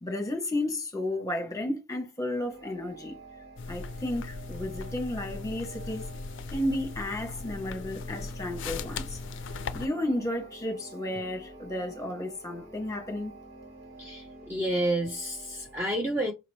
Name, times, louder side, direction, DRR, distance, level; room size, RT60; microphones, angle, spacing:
voice 1, 0.0-3.1 3.7-6.1 6.5-9.2 9.7-13.3, left 1 dB, 15° left, 1.1 m, -32 dB
sound 1, 2.5-15.8, right 2 dB, 75° right, 2.3 m, -49 dB
sound 2, 3.6-9.9, left 4 dB, 60° left, 0.4 m, -38 dB
voice 2, 14.0-16.3, right 1 dB, 10° right, 0.5 m, -30 dB
5.0 x 2.9 x 3.2 m
head